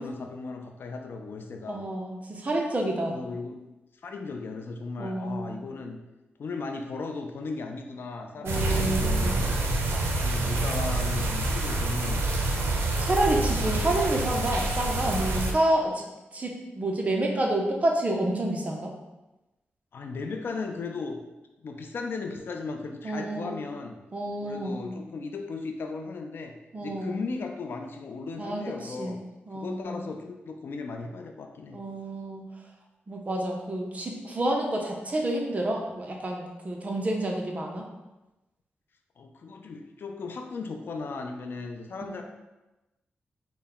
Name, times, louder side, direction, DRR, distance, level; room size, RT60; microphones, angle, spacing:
voice 1, 0.0-1.8 3.0-3.6 4.0-6.0 6.4-12.7 19.9-21.2 21.6-24.0 24.4-26.5 26.8-29.2 29.5-31.8 39.2-42.2, left 4 dB, 65° left, 4 dB, 0.4 m, -36 dB
voice 2, 1.7-3.2 5.0-5.5 8.4-9.3 13.0-16.0 16.3-18.9 23.0-23.6 24.1-24.8 26.7-27.2 28.4-29.1 29.5-30.0 31.7-32.4 33.1-37.9 41.9-42.1, right 1 dB, 35° right, 1 dB, 0.7 m, -29 dB
sound 1, 8.5-15.5, right 2 dB, 85° right, 0.5 m, -27 dB
3.9 x 2.2 x 3.9 m, 1.0 s
cardioid pair, 80°, 4 cm